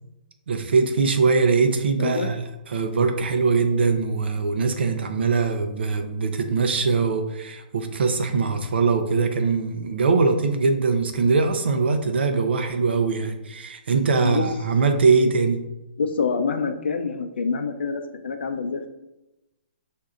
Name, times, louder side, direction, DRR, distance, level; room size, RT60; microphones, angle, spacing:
voice 1, 0.5-2.4 2.7-15.6, right 4 dB, 75° right, 6 dB, 0.6 m, -22 dB
voice 2, 16.0-18.9, left 5 dB, 85° left, 7 dB, 0.5 m, -26 dB
6.5 x 2.7 x 2.4 m, 0.98 s
hypercardioid pair, 170°, 6 cm